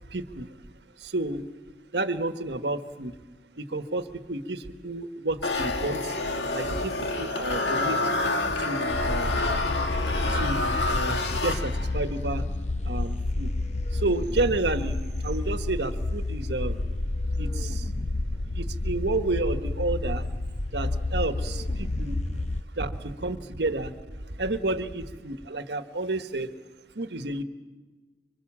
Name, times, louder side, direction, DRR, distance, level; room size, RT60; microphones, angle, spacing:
voice 1, 0.1-0.5 1.1-1.4 1.9-3.1 3.6-6.0 6.5-8.0 8.6-9.4 10.3-12.4 12.9-13.5 14.0-16.8 17.4-17.8 18.6-20.3 20.7-22.2 22.8-23.9 24.4-26.5 27.0-27.4, right 2 dB, 75° right, 9 dB, 1.3 m, -30 dB
sound 1, 5.4-12.0, left 2 dB, 80° left, 2.0 m, -28 dB
sound 2, 8.9-22.6, left 2 dB, 40° left, 0.7 m, -30 dB
26.0 x 24.5 x 7.4 m, 1.3 s
head